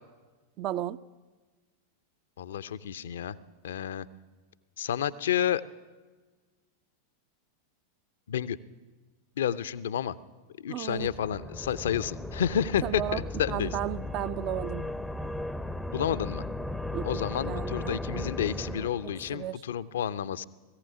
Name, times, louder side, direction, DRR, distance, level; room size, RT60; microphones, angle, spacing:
voice 1, 0.6-1.0 10.7-11.1 12.8-14.8 16.9-18.2 19.0-19.6, right 12 dB, 35° right, 14 dB, 0.6 m, -34 dB
voice 2, 2.4-3.4 3.6-4.1 4.8-5.6 8.3-8.6 9.4-10.2 10.6-13.8 15.9-16.4 17.0-20.4, left 9 dB, 60° left, 16 dB, 0.7 m, -30 dB
sound 1, 11.0-19.5, left 2 dB, ahead, 0.7 m, -36 dB
18.5 x 15.0 x 9.9 m, 1.3 s
figure-of-eight pair, 90°, 0 cm